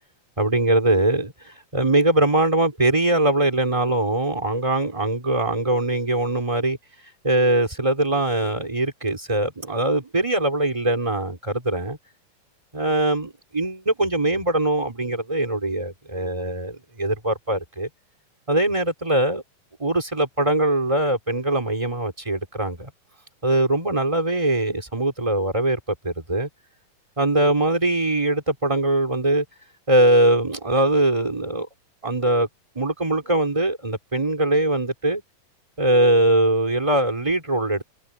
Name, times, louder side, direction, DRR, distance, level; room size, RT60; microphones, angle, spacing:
voice 1, 0.4-6.8 7.2-12.0 12.7-17.9 18.5-19.4 19.8-22.9 23.4-26.5 27.2-29.4 29.9-31.7 32.0-32.5 32.7-35.2 35.8-37.8, right 1 dB, 10° right, 3.7 m, -22 dB
omnidirectional pair, 4.1 m